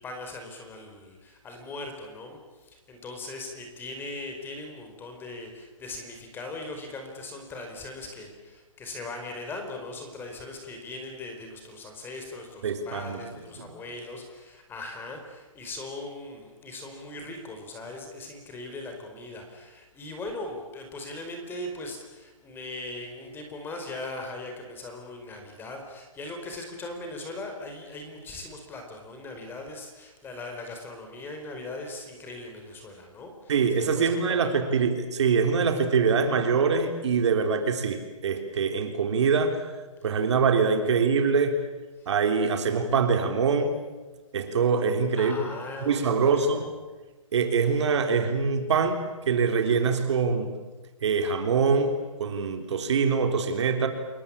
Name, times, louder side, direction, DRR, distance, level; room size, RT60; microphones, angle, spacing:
voice 1, 0.0-34.6 42.0-42.1 45.1-46.7, left 2 dB, 10° left, 4 dB, 4.4 m, -39 dB
voice 2, 12.6-13.2 13.6-13.7 33.5-39.6 40.0-41.6 42.1-43.8 44.3-45.5 45.8-46.6 47.3-50.6 51.0-53.9, right 5 dB, 55° right, 6 dB, 3.6 m, -24 dB
29.0 x 21.5 x 8.7 m, 1.2 s
hypercardioid pair, 150°, 17 cm